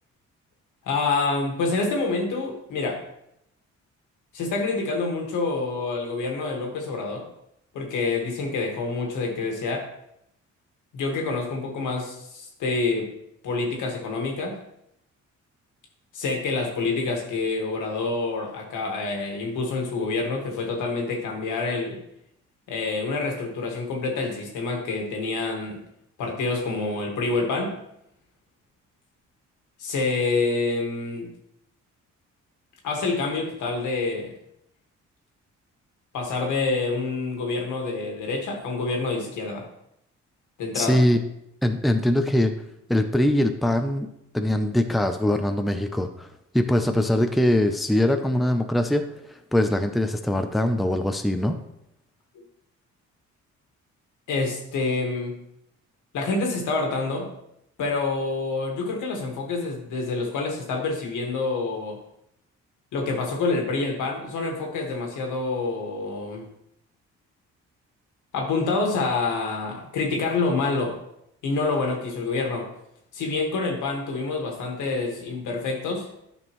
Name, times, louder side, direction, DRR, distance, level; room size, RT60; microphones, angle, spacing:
voice 1, 0.9-3.0 4.3-7.2 7.7-9.9 10.9-13.1 13.4-14.6 16.1-22.0 22.7-25.8 26.2-27.7 29.8-31.3 32.8-34.3 36.1-39.7 40.6-41.0 54.3-55.4 56.1-57.3 57.8-62.0 62.9-66.4 68.3-71.0 71.4-72.7 73.1-76.2, left 3 dB, 80° left, 2 dB, 1.8 m, -27 dB
voice 2, 40.7-41.2 41.6-42.5 42.9-44.1 44.3-46.3 46.5-51.6, left 1 dB, ahead, 6 dB, 0.5 m, -22 dB
9.8 x 5.3 x 3.1 m, 0.78 s
cardioid pair, 90°, 30 cm